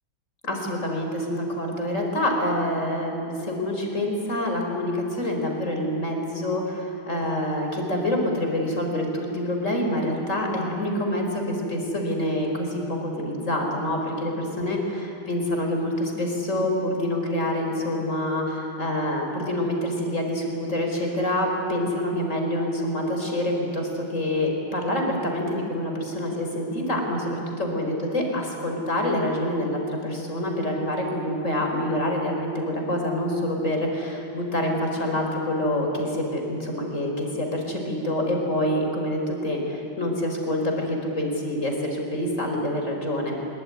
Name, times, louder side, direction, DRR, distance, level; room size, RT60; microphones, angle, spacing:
voice 1, 0.4-43.4, left 1 dB, 35° left, 2 dB, 4.7 m, -26 dB
24.0 x 22.5 x 9.6 m, 2.7 s
omnidirectional pair, 2.3 m